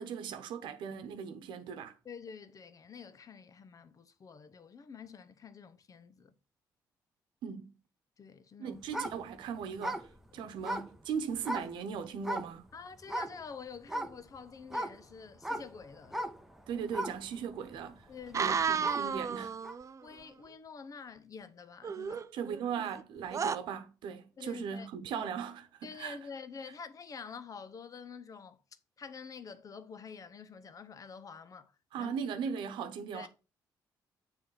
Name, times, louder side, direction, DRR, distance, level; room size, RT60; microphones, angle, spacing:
voice 1, 0.0-1.9 7.4-7.7 8.6-10.1 10.3-12.7 16.7-18.1 18.3-19.6 22.3-26.2 31.9-33.3, right 7 dB, 85° right, 0.9 m, -38 dB
voice 2, 2.0-6.3 8.2-8.8 10.3-10.5 12.7-16.2 18.1-18.9 20.0-22.2 24.4-25.3 25.8-28.6 29.0-32.1 33.1-33.3, left 5 dB, 45° left, 0.8 m, -48 dB
sound 1, 8.8-11.8 12.2-12.7 13.0-13.4 13.8-19.2 19.6-19.7, right 1 dB, 5° right, 1.0 m, -38 dB
sound 2, 18.3-20.0 21.8-23.0 23.3-23.6, right 6 dB, 40° right, 0.4 m, -32 dB
6.9 x 3.5 x 5.7 m
cardioid pair, 80°, 8 cm